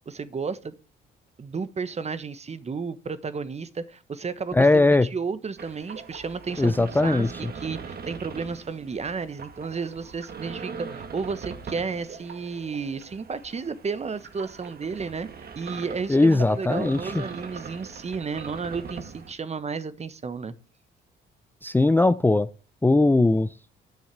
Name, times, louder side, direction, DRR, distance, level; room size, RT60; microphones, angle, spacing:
voice 1, 0.1-0.7 1.4-4.8 5.1-7.3 7.5-15.3 15.5-20.5, right 5 dB, 35° right, 1.2 m, -32 dB
voice 2, 4.5-5.1 6.6-7.3 16.1-17.2 21.6-22.5 22.8-23.5, left 2 dB, 10° left, 0.5 m, -19 dB
sound 1, 5.6-19.3, right 6 dB, 50° right, 1.7 m, -41 dB
10.5 x 6.3 x 8.1 m
cardioid pair, 90°, 20 cm